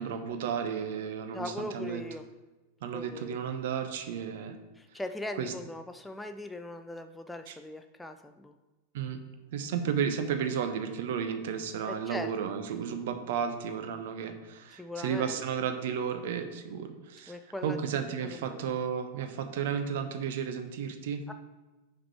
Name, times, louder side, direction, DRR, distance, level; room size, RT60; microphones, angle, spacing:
voice 1, 0.0-2.0 2.8-4.6 5.4-5.5 7.5-7.6 8.9-9.2 9.5-17.4 17.6-21.2, right 7 dB, 55° right, 8 dB, 0.7 m, -33 dB
voice 2, 1.3-2.2 2.9-3.4 4.8-8.5 11.9-12.3 12.9-13.0 14.7-15.4 17.3-17.8 18.2-18.6 21.3-21.4, left 2 dB, 5° left, 7 dB, 0.3 m, -40 dB
5.9 x 4.8 x 4.6 m, 1.2 s
figure-of-eight pair, 90°, 0 cm